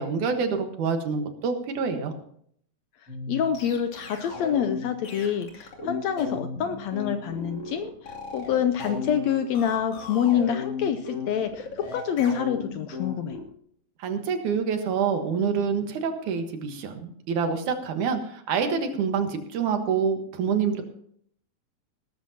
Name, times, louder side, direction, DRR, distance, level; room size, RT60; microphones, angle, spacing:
voice 1, 0.0-2.1 14.0-20.8, right 6 dB, 70° right, 6 dB, 2.8 m, -27 dB
sound 1, 3.1-13.4, left 4 dB, 50° left, 3.5 m, -35 dB
voice 2, 3.3-13.4, left 8 dB, 75° left, 9 dB, 1.7 m, -27 dB
18.5 x 13.5 x 2.8 m, 0.64 s
omnidirectional pair, 3.7 m